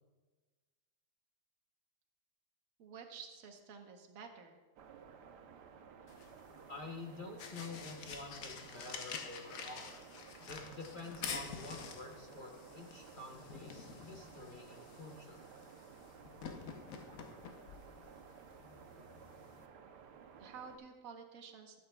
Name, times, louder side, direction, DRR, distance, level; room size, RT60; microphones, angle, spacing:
voice 1, 2.8-4.6 20.4-21.8, right 6 dB, 60° right, 4 dB, 1.3 m, -51 dB
sound 1, 4.8-20.8, right 6 dB, 90° right, 1.3 m, -56 dB
sound 2, 6.1-19.7, left 6 dB, 60° left, 1.1 m, -49 dB
voice 2, 6.7-9.9 10.5-15.4, left 3 dB, 40° left, 0 dB, 0.9 m, -48 dB
15.5 x 8.4 x 2.2 m, 1.3 s
omnidirectional pair, 1.8 m